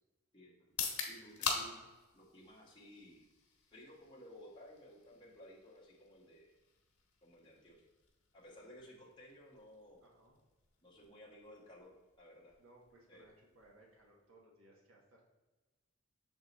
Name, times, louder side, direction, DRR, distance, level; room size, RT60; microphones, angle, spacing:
voice 1, 0.3-0.7 1.1-1.9 2.1-3.3 3.7-6.5 7.2-7.8 8.3-10.0 10.8-12.5 13.1-13.3, equal, 20° left, -4 dB, 1.3 m, -57 dB
sound 1, 0.6-14.5, left 5 dB, 80° left, 1.3 m, -47 dB
voice 2, 10.0-10.3 12.6-15.2, right 1 dB, 70° right, -2 dB, 1.5 m, -64 dB
7.0 x 3.8 x 4.0 m, 1.2 s
head